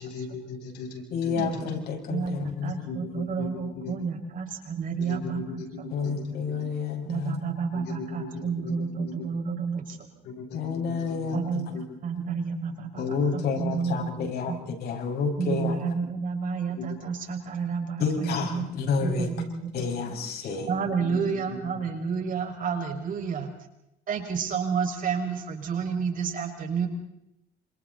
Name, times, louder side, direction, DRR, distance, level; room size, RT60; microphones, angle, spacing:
voice 1, 0.0-1.6 2.8-3.5 3.8-3.9 5.0-5.7 7.7-8.3 8.6-8.7 9.0-9.1 10.2-11.4 11.7-11.8 12.9-13.0 16.8-16.9 20.4-20.5 20.8-21.4, left 3 dB, 85° left, 1 dB, 7.6 m, -38 dB
voice 2, 1.1-3.2 5.9-7.6 10.5-11.6 13.0-15.8 18.0-19.3 19.7-20.7, left 5 dB, 70° left, 3 dB, 6.2 m, -30 dB
voice 3, 2.1-6.2 7.0-10.0 11.3-14.1 14.5-14.6 15.4-18.6 19.0-19.9 20.7-23.5 24.1-26.9, right 5 dB, 50° right, 3 dB, 6.0 m, -30 dB
29.5 x 26.5 x 4.2 m, 0.82 s
cardioid pair, 110°, 17 cm